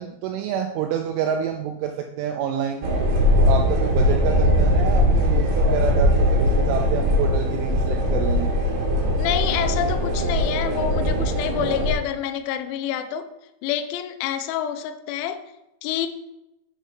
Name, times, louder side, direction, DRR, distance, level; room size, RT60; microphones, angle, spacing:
voice 1, 0.0-2.9 3.4-8.5, right 8 dB, 85° right, 2.9 m, -28 dB
sound 1, 2.8-11.9, left 1 dB, 65° right, 3.2 m, -20 dB
voice 2, 9.2-13.3 13.6-15.4 15.8-16.1, left 9 dB, 80° left, 2.8 m, -27 dB
7.9 x 4.6 x 5.7 m
omnidirectional pair, 5.7 m